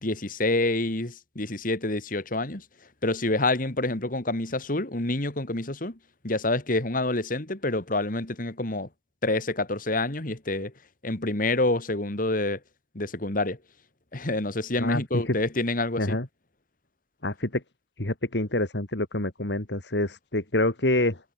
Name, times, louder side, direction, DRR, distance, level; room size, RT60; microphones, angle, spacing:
voice 1, 0.0-2.6 3.0-6.0 6.2-8.9 9.2-10.7 11.0-12.6 12.9-13.6 14.1-16.2, left 2 dB, 50° left, 2.7 m, -27 dB
voice 2, 14.8-15.3 16.0-16.3 17.2-17.6 18.0-21.2, left 1 dB, 75° left, 2.9 m, -27 dB
head